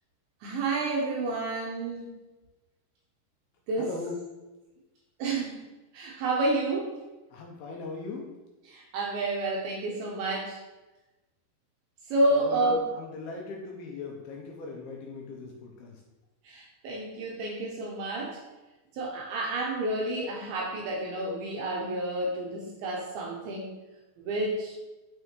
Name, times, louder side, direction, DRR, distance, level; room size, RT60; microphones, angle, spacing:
voice 1, 0.4-2.2 3.7-3.9 5.2-5.6 5.9-6.9 8.7-10.6 12.1-12.8 16.4-18.4 18.9-23.8 24.2-24.8, right 2 dB, 75° right, -2 dB, 2.5 m, -30 dB
voice 2, 3.8-4.2 7.3-8.3 12.3-16.0, left 3 dB, 80° left, 0 dB, 2.4 m, -39 dB
6.5 x 5.5 x 3.1 m, 1.1 s
omnidirectional pair, 5.0 m